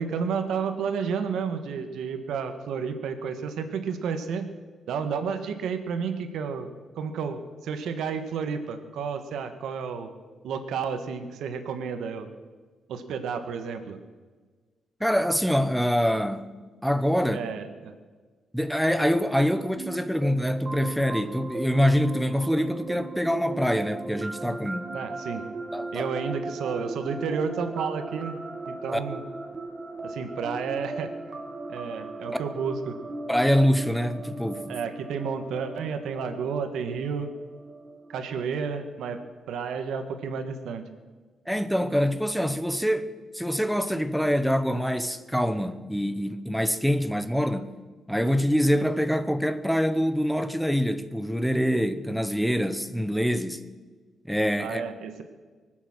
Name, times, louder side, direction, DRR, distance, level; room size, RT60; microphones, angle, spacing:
voice 1, 0.0-4.5 4.9-6.7 6.9-10.1 10.4-12.3 12.9-14.0 17.3-17.9 24.9-25.4 25.9-28.4 28.7-29.2 30.0-31.1 31.7-33.0 34.7-37.3 38.1-39.2 39.5-40.8 54.6-55.2, right 6 dB, 85° right, 1.4 m, -31 dB
voice 2, 15.0-17.5 18.5-24.9 25.7-26.1 28.9-29.0 33.3-34.8 41.5-43.1 43.3-47.8 48.1-53.6 54.3-54.8, equal, ahead, 0.8 m, -25 dB
sound 1, 19.8-39.3, right 2 dB, 30° right, 1.6 m, -38 dB
24.0 x 8.1 x 6.2 m
cardioid pair, 150°, 0 cm